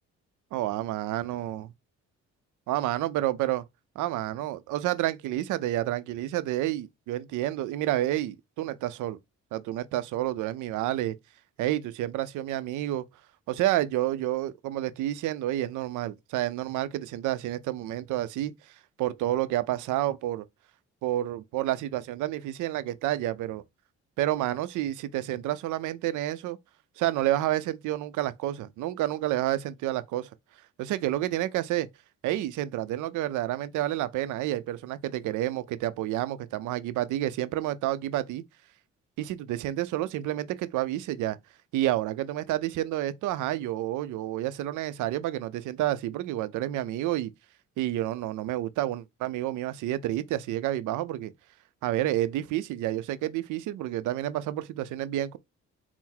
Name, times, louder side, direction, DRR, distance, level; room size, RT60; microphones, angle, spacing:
voice 1, 0.5-1.7 2.7-3.6 4.0-9.2 9.5-11.2 11.6-13.0 13.5-18.5 19.0-20.4 21.0-23.6 24.2-26.6 27.0-30.3 30.8-31.9 32.2-38.4 39.2-41.4 41.7-47.3 47.8-51.3 51.8-55.4, right 14 dB, 80° right, 0.5 m, -29 dB
4.3 x 2.0 x 3.8 m
cardioid pair, 90°, 30 cm